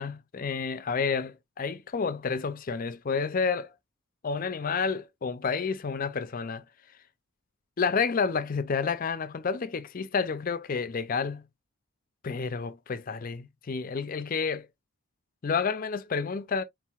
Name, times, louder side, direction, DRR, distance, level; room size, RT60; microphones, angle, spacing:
voice 1, 0.0-3.7 4.2-6.6 7.8-11.4 12.2-14.7 15.4-16.6, left 5 dB, 40° left, 0.4 m, -30 dB
4.5 x 3.7 x 2.3 m
head